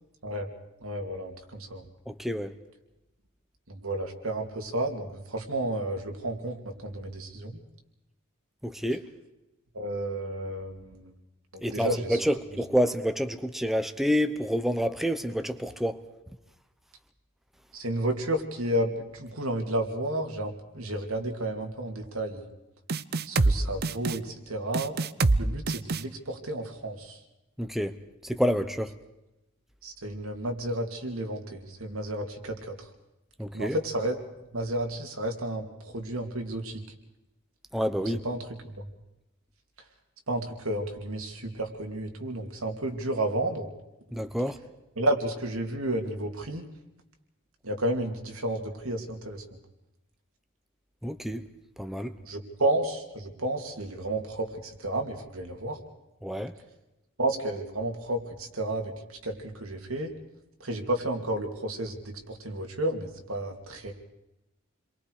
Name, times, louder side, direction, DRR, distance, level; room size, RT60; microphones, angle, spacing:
voice 1, 0.8-1.9 3.7-7.6 9.7-11.1 11.5-12.2 17.7-22.4 23.2-24.9 25.4-27.2 29.8-32.7 33.5-34.2 34.5-36.8 38.2-38.7 40.3-43.7 45.0-46.7 47.6-49.4 52.3-55.8 57.2-58.9 59.2-60.1 60.6-61.9 62.3-63.9, right 1 dB, 85° right, 3 dB, 3.0 m, -31 dB
voice 2, 2.1-2.5 8.6-9.1 11.6-16.1 27.6-28.9 33.4-33.8 37.7-38.2 44.1-44.6 51.0-51.4 51.8-52.1 56.2-56.5, equal, ahead, 8 dB, 0.9 m, -28 dB
sound 1, 22.9-23.6 23.8-24.2 24.7-25.4 25.7-26.0, right 3 dB, 50° right, 0.7 m, -24 dB
29.5 x 23.0 x 5.0 m, 0.95 s
head